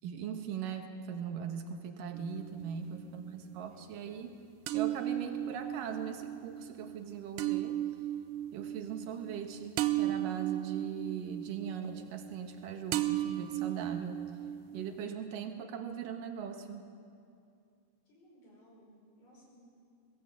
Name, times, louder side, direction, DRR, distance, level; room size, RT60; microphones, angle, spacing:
voice 1, 0.0-4.4 4.7-7.8 8.5-14.3 14.7-16.9, right 7 dB, 65° right, 5 dB, 2.7 m, -40 dB
sound 1, 2.1-3.0 4.7-12.6 12.9-15.0, right 13 dB, 85° right, 1.9 m, -35 dB
voice 2, 2.8-4.0 18.1-19.7, right 1 dB, 85° left, -4 dB, 7.8 m, -60 dB
22.0 x 16.5 x 7.9 m, 2.4 s
omnidirectional pair, 4.6 m